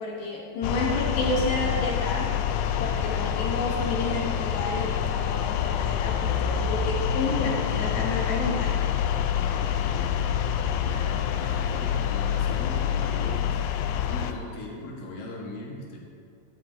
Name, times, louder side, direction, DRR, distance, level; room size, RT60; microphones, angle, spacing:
voice 1, 0.0-2.3 2.8-8.7, left 2 dB, 75° left, -1 dB, 2.6 m, -30 dB
sound 1, 0.6-14.3, left 9 dB, 90° left, 1.7 m, -27 dB
voice 2, 9.3-16.0, left 2 dB, 55° left, -2 dB, 2.0 m, -40 dB
17.0 x 7.8 x 2.7 m, 2.3 s
omnidirectional pair, 3.9 m